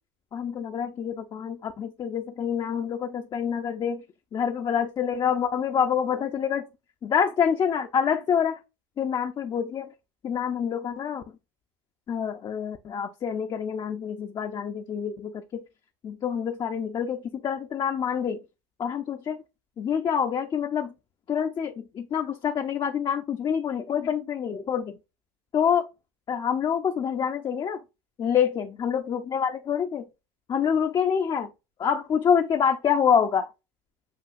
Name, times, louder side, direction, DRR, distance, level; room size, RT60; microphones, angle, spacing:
voice 1, 0.3-4.0 4.3-6.6 7.0-8.6 9.0-9.9 10.2-11.2 12.1-15.6 16.0-18.4 18.8-19.4 19.8-20.9 21.3-25.0 25.5-25.9 26.3-27.8 28.2-30.0 30.5-31.5 31.8-33.5, left 7 dB, 30° left, 0.6 m, -26 dB
7.7 x 2.7 x 2.5 m
supercardioid pair, 100°, 14 cm